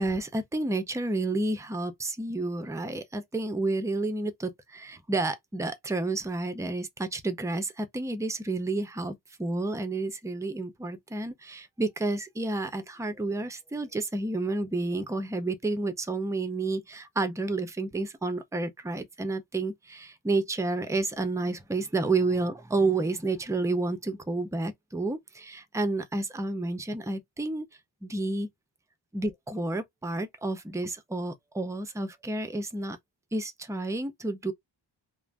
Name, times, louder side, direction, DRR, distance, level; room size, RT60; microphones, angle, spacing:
voice 1, 0.0-27.7 28.0-28.5 29.1-33.0 33.3-34.5, right 2 dB, 5° right, 0.4 m, -30 dB
2.5 x 2.1 x 3.1 m
wide cardioid pair, 115°, 47 cm